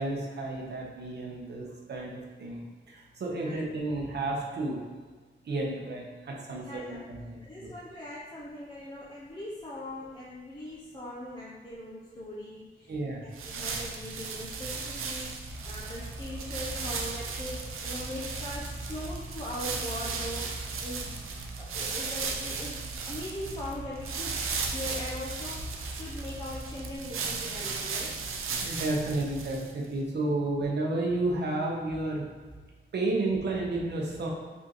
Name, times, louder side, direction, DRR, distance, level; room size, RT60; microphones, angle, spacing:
voice 1, 0.0-4.8 5.4-7.7 12.9-13.2 28.6-32.2 32.9-34.3, right 2 dB, 55° right, -1 dB, 0.9 m, -32 dB
voice 2, 6.5-7.0 7.4-21.2 21.6-28.3, left 1 dB, 20° left, -6 dB, 0.6 m, -41 dB
sound 1, 13.3-29.9, right 4 dB, 90° right, 0.5 m, -36 dB
sound 2, 15.5-26.9, equal, 75° left, 0.9 m, -43 dB
5.0 x 3.5 x 3.0 m, 1.4 s
wide cardioid pair, 145°, 21 cm